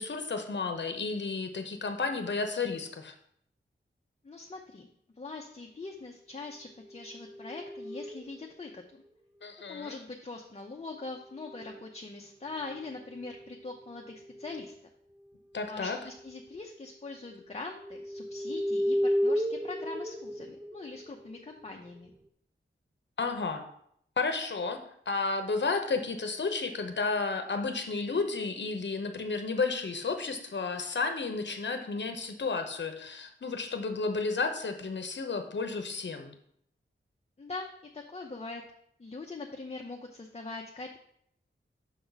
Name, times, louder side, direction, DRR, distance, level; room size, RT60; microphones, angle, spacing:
voice 1, 0.0-3.1 9.4-10.0 15.5-16.0 23.2-23.6 24.2-36.3, left 4 dB, 60° left, 7 dB, 0.9 m, -32 dB
voice 2, 4.2-4.9 5.2-9.0 9.7-14.7 15.7-22.1 37.4-37.7 37.9-38.6 39.0-41.0, left 3 dB, 30° left, 1 dB, 0.7 m, -42 dB
sound 1, 6.8-8.7 11.0-11.9 12.5-14.8 15.6-15.9 16.2-16.7 17.3-22.1, equal, 10° right, 0.4 m, -35 dB
6.2 x 5.9 x 4.0 m, 0.69 s
wide cardioid pair, 95°, 21 cm